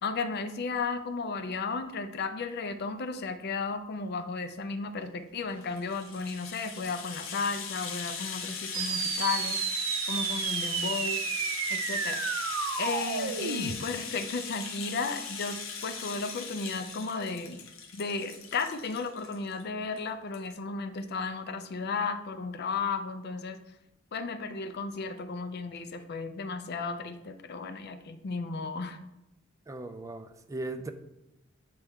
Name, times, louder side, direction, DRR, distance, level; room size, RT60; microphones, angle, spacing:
voice 1, 0.0-9.6 10.1-11.2 11.7-12.2 12.8-17.6 17.9-23.6 24.1-29.0, left 4 dB, 55° left, 0.4 m, -34 dB
Rattle (instrument), 5.5-19.6 20.0-20.1 20.3-20.5, left 6 dB, 75° left, 0.9 m, -39 dB
sound 1, 8.7-13.7, right 7 dB, 85° right, 0.5 m, -31 dB
voice 2, 29.7-30.9, right 2 dB, 15° right, 0.4 m, -38 dB
8.2 x 3.4 x 3.5 m
head